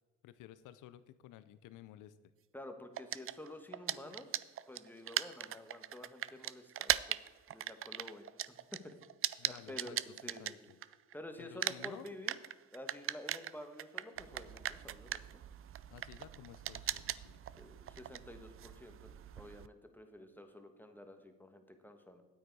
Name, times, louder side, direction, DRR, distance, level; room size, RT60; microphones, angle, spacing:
voice 1, 0.2-2.2 9.4-10.0 10.2-10.8 11.4-12.1 15.9-17.4, left 12 dB, 85° left, 14 dB, 0.6 m, -54 dB
voice 2, 2.5-4.3 4.7-8.3 8.7-9.0 9.5-10.7 11.1-12.3 12.7-15.2 17.6-19.1 19.4-22.2, left 1 dB, 5° left, 6 dB, 1.3 m, -50 dB
sound 1, 3.0-11.1 11.4-19.7, right 11 dB, 45° right, 0.4 m, -39 dB
9.4 x 8.6 x 4.7 m, 1.3 s
cardioid pair, 90°, 30 cm